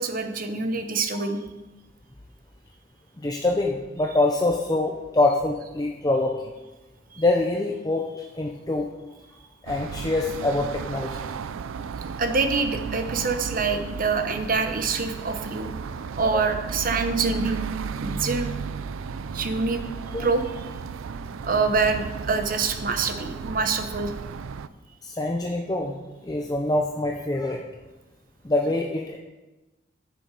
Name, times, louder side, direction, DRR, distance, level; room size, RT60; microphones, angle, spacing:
voice 1, 0.0-1.4 7.1-7.2 12.2-17.6 18.0-18.5 19.3-19.8 20.2-20.7 21.4-24.1, right 4 dB, 45° right, 6 dB, 0.9 m, -26 dB
voice 2, 3.2-6.5 7.2-8.9 9.6-11.3 16.2-16.4 20.1-20.2 25.0-26.0 26.2-27.6 28.4-29.2, left 2 dB, 20° left, 1 dB, 0.6 m, -25 dB
sound 1, 9.7-24.7, right 5 dB, 90° right, 0.4 m, -34 dB
11.5 x 6.9 x 4.9 m, 1.1 s
head